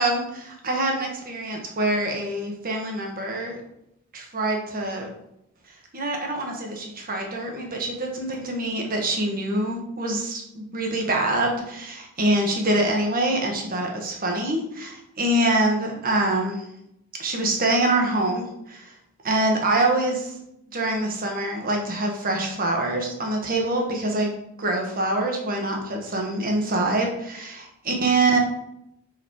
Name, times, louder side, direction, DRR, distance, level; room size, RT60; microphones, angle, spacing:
voice 1, 0.0-3.6 4.1-5.1 5.9-16.6 17.2-18.9 19.2-20.3 20.7-24.3 24.6-28.4, right 2 dB, 40° right, 2 dB, 1.3 m, -25 dB
5.3 x 5.0 x 4.7 m, 0.80 s
head